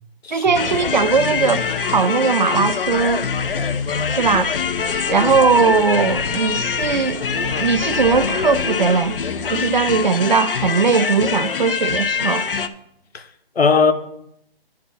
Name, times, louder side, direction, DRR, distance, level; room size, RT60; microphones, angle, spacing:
voice 1, 0.3-3.3 4.1-4.6 5.1-9.2 9.5-12.5, right 5 dB, 50° right, 0.4 m, -19 dB
sound 1, 0.5-12.7, left 6 dB, 65° left, 0.6 m, -24 dB
sound 2, 2.6-10.1, left 2 dB, 35° left, 1.4 m, -36 dB
voice 2, 13.1-13.9, left 5 dB, 80° left, 1.1 m, -18 dB
11.0 x 4.6 x 5.7 m
hypercardioid pair, 170°, 30 cm